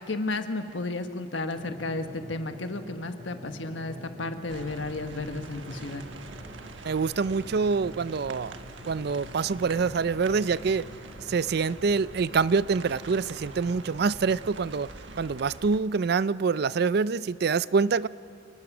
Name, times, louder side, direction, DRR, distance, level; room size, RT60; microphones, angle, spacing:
voice 1, 0.0-6.1, left 2 dB, 85° left, 7 dB, 1.4 m, -33 dB
Drum, 1.6-14.5, equal, 40° right, 2.7 m, -46 dB
sound 1, 4.5-15.8, right 3 dB, 85° right, 1.4 m, -45 dB
voice 2, 6.8-8.5 8.8-10.9 11.3-14.9 15.2-18.1, right 5 dB, 60° right, 18 dB, 0.4 m, -26 dB
29.0 x 19.5 x 6.1 m, 2.4 s
head